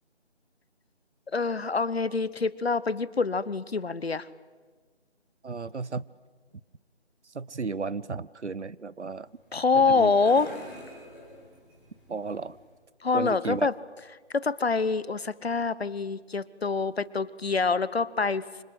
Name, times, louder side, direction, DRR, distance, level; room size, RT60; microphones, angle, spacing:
voice 1, 1.3-4.3 9.5-10.5 13.0-13.7 14.3-18.6, left 4 dB, 60° left, 18 dB, 1.1 m, -26 dB
voice 2, 5.4-6.0 7.2-9.3 9.7-10.1 12.1-12.6 13.1-13.7, right 4 dB, 75° right, 19 dB, 1.0 m, -34 dB
sound 1, 9.1-12.8, equal, 5° right, 1.3 m, -47 dB
26.5 x 25.5 x 8.1 m, 1.5 s
figure-of-eight pair, 165°, 35 cm